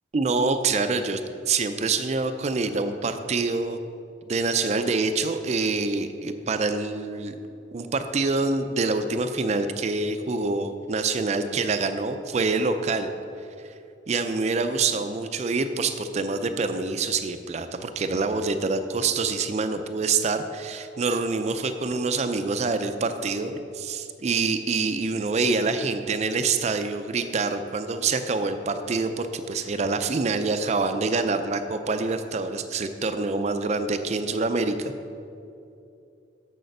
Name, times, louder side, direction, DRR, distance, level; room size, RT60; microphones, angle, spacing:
voice 1, 0.1-1.2 1.5-3.8 4.3-7.4 7.7-13.1 14.1-34.9, right 3 dB, 35° right, 9 dB, 0.4 m, -26 dB
6.7 x 6.4 x 6.6 m, 2.6 s
head